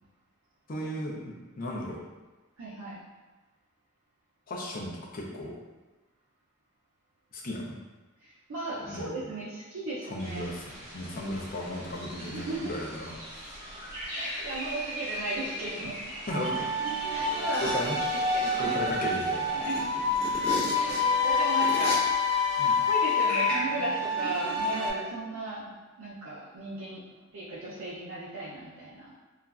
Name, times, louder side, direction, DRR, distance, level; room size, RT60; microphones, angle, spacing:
voice 1, 0.7-2.0 4.5-5.5 7.3-7.8 8.8-9.1 10.1-13.1 16.3-16.7 17.6-18.0 18.6-19.6 22.6-22.7, equal, 45° left, -2 dB, 0.5 m, -35 dB
voice 2, 2.6-3.0 8.2-10.5 12.3-12.8 14.1-16.0 17.1-17.7 18.3-18.8 19.5-19.9 20.7-22.4 22.6-25.6 26.0-27.0 27.3-29.1, right 2 dB, 80° right, -8 dB, 0.5 m, -36 dB
sound 1, 10.2-22.7, equal, 50° right, 0.9 m, -42 dB
sound 2, 16.3-24.9, left 3 dB, 20° right, 1.4 m, -27 dB
sound 3, 17.5-18.1 18.4-18.5 18.9-21.0 21.6-22.0 23.3-23.6, left 1 dB, 5° left, 0.9 m, -33 dB
2.9 x 2.4 x 2.3 m, 1.2 s
head